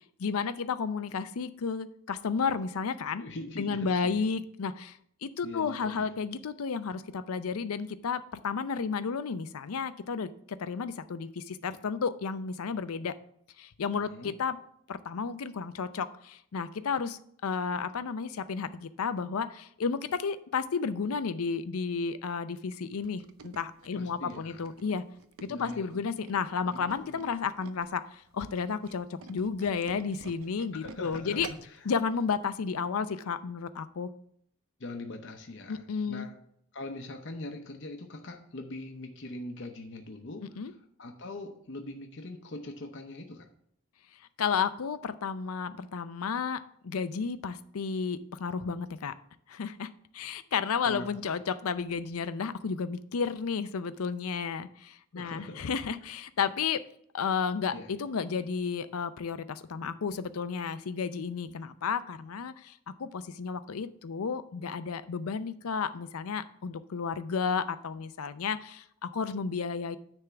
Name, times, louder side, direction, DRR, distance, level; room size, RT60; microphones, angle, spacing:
voice 1, 0.2-3.2 3.6-13.1 13.6-14.6 14.9-25.0 25.4-31.5 31.8-34.1 35.7-36.3 40.4-40.7 44.4-49.1 49.5-56.8 57.1-70.0, left 5 dB, 90° left, 13 dB, 0.5 m, -32 dB
voice 2, 3.2-4.3 5.4-6.1 14.1-14.4 23.9-24.7 25.5-25.9 26.7-27.4 30.7-31.9 34.8-36.3 36.7-43.5 50.9-51.1 55.1-55.7 56.0-56.1 57.7-57.9, left 2 dB, 55° left, 4 dB, 0.8 m, -42 dB
Tools, 22.9-27.9 28.3-31.8 32.2-32.4 32.7-32.8, right 5 dB, 80° right, 0.6 m, -49 dB
9.9 x 3.5 x 6.9 m, 0.69 s
head